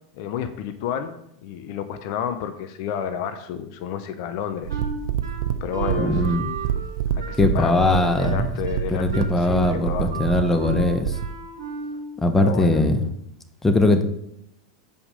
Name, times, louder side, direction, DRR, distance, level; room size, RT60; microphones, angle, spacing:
voice 1, 0.2-1.2 1.4-4.8 5.6-6.4 7.1-10.1 12.4-12.9, left 8 dB, 55° left, 9 dB, 0.6 m, -31 dB
sound 1, 4.6-11.3, right 9 dB, 70° right, 0.6 m, -27 dB
Wind instrument woodwind instrument, 4.7-12.1, right 6 dB, 85° right, 1.1 m, -35 dB
voice 2, 6.0-6.4 7.4-8.5 8.9-11.1 12.2-13.0 13.6-14.0, left 2 dB, 10° left, 7 dB, 0.9 m, -20 dB
sound 2, 7.4-8.0 8.2-8.9 9.2-9.4 9.6-9.8 10.1-10.9 11.2-12.1, left 4 dB, 90° left, 1.9 m, -39 dB
7.1 x 5.0 x 4.9 m, 0.77 s
hypercardioid pair, 100°, 2 cm